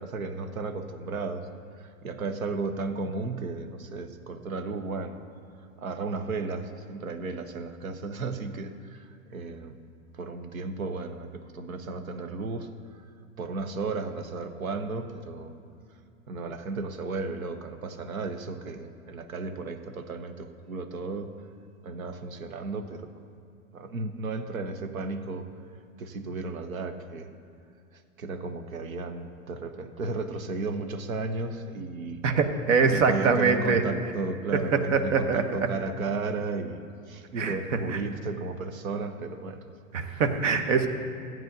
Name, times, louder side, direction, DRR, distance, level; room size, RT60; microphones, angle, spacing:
voice 1, 0.0-1.5 1.8-5.2 5.8-9.8 10.1-13.0 13.4-15.5 16.3-21.3 21.8-23.1 23.7-25.5 26.0-27.3 27.9-32.2 32.9-39.6 40.0-40.2 40.5-40.6, right 3 dB, 90° right, 9 dB, 0.8 m, -34 dB
voice 2, 32.2-33.8 34.5-35.6 37.4-37.6 39.9-40.9, right 5 dB, 65° right, 7 dB, 1.0 m, -23 dB
15.0 x 8.9 x 2.7 m, 2.5 s
hypercardioid pair, 100°, 40 cm